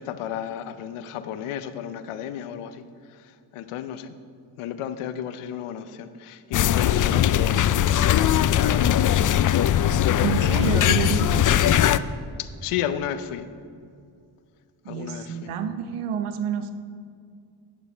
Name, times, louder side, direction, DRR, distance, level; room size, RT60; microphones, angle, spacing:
voice 1, 0.0-4.2 4.6-9.4 12.4-13.5 14.9-15.5, left 9 dB, 80° left, 12 dB, 0.7 m, -33 dB
sound 1, 6.5-12.0, left 11 dB, 40° left, 0.4 m, -20 dB
voice 2, 10.2-11.7 14.8-16.7, right 7 dB, 80° right, 9 dB, 0.9 m, -28 dB
11.0 x 8.9 x 4.4 m, 2.3 s
supercardioid pair, 45°, 50 cm